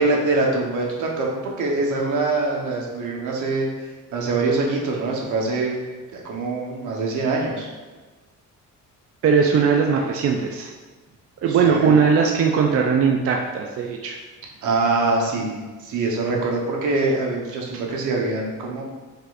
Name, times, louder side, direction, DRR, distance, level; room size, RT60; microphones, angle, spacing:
voice 1, 0.0-3.7 4.1-5.8 6.1-7.7 11.5-12.0 14.6-18.8, right 3 dB, 75° right, -2 dB, 1.1 m, -24 dB
voice 2, 9.2-10.7 11.4-14.2, right 6 dB, 50° right, 1 dB, 0.5 m, -19 dB
5.4 x 3.8 x 2.5 m, 1.3 s
cardioid pair, 90°, 30 cm